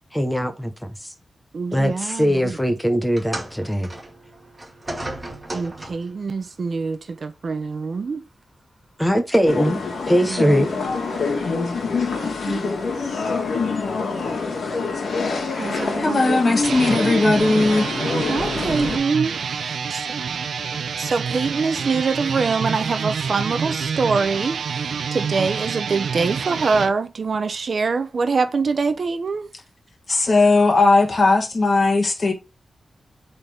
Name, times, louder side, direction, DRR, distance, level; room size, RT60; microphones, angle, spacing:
voice 1, 0.1-0.7 1.0-1.1 1.7-3.9 9.0-9.8 10.1-10.7, equal, 5° left, 1.1 m, -20 dB
voice 2, 1.5-2.6 5.5-8.2 10.3-10.7 12.5-12.6 15.6-16.6 18.3-20.0 21.0-29.5, right 4 dB, 45° right, 0.7 m, -24 dB
sound 1, 3.1-6.2 7.2-7.4 8.2-8.3, right 1 dB, 15° right, 2.2 m, -35 dB
sound 2, 9.5-19.0, left 4 dB, 60° left, 1.8 m, -25 dB
voice 3, 16.0-17.9 30.1-32.3, left 3 dB, 30° left, 1.8 m, -17 dB
sound 3, 16.5-26.9, right 6 dB, 80° right, 0.7 m, -27 dB
8.2 x 4.0 x 3.5 m
wide cardioid pair, 180°, 0 cm